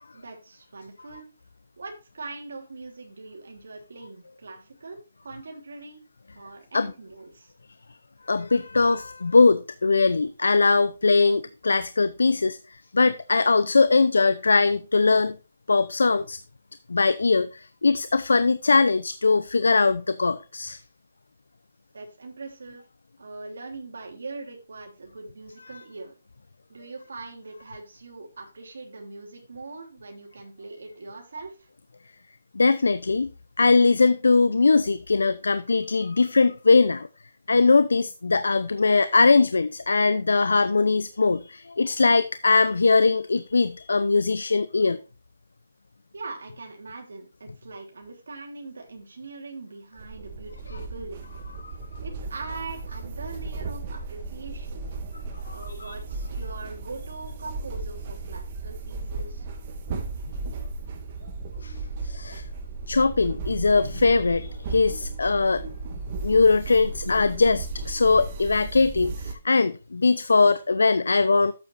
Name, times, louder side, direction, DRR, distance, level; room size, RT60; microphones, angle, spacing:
voice 1, 0.1-1.4 1.8-6.0 6.3-7.5 21.9-22.9 23.2-26.2 26.7-31.7 46.1-51.3 52.0-54.8 55.5-59.5, right 3 dB, 75° right, 3.2 m, -41 dB
voice 2, 8.3-15.4 15.7-16.4 16.9-20.8 32.5-33.3 33.6-37.1 37.5-45.0 51.6-51.7 55.5-55.6 55.8-55.9 61.6-61.7 62.0-62.4 62.9-65.6 66.2-71.5, left 4 dB, 85° left, 0.7 m, -21 dB
sound 1, 50.0-69.3, right 3 dB, 35° right, 2.1 m, -35 dB
12.0 x 8.4 x 2.6 m
hypercardioid pair, 155°, 0 cm